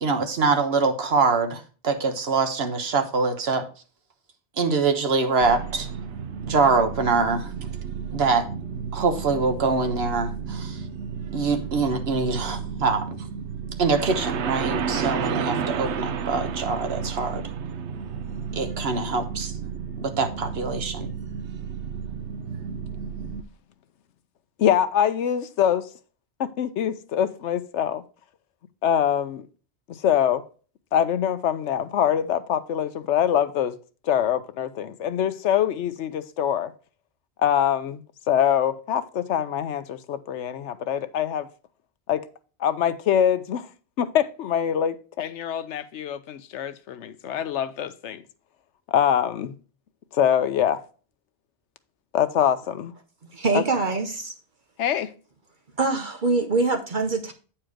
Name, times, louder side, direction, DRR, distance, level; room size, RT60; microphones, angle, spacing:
voice 1, 0.0-3.7 4.6-5.9 6.4-7.5 8.1-8.5 8.9-10.8 11.3-13.3 13.8-17.4 18.5-19.5 20.0-21.1, right 4 dB, 65° right, 1.3 m, -24 dB
sound 1, 5.4-23.4, right 6 dB, 85° right, 1.0 m, -32 dB
voice 2, 24.6-25.9 26.4-28.0 28.8-29.5 29.9-30.4 30.9-33.8 34.0-36.7 37.4-41.5 42.1-42.3 42.6-43.7 44.0-48.2 48.9-49.5 50.1-50.8 52.1-52.9 53.5-53.6 54.8-55.1, left 9 dB, 90° left, 1.0 m, -24 dB
voice 3, 53.3-54.3 55.8-57.3, right 3 dB, 50° right, 1.0 m, -24 dB
8.9 x 4.4 x 4.9 m
omnidirectional pair, 1.1 m